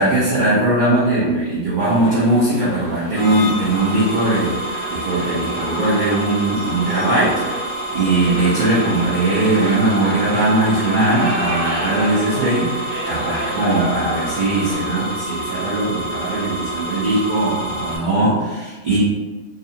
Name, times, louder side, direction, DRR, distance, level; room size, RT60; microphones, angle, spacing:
voice 1, 0.0-19.0, right 2 dB, 75° right, -8 dB, 0.4 m, -19 dB
sound 1, 1.8-14.7, right 1 dB, 30° right, 0.8 m, -30 dB
sound 2, 3.2-18.0, right 2 dB, 70° left, 0.6 m, -28 dB
2.6 x 2.4 x 2.6 m, 1.2 s
omnidirectional pair, 1.8 m